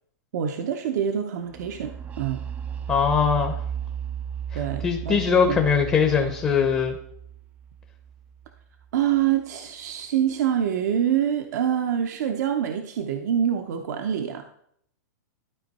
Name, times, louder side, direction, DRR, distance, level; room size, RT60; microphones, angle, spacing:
voice 1, 0.3-2.4 4.5-5.6 8.9-14.4, right 9 dB, 65° right, 5 dB, 0.7 m, -26 dB
sound 1, 1.5-9.2, right 8 dB, 15° right, 0.4 m, -35 dB
voice 2, 2.9-3.6 4.5-7.0, left 6 dB, 15° left, 3 dB, 0.7 m, -21 dB
12.0 x 4.4 x 4.1 m, 0.70 s
supercardioid pair, 155°, 10 cm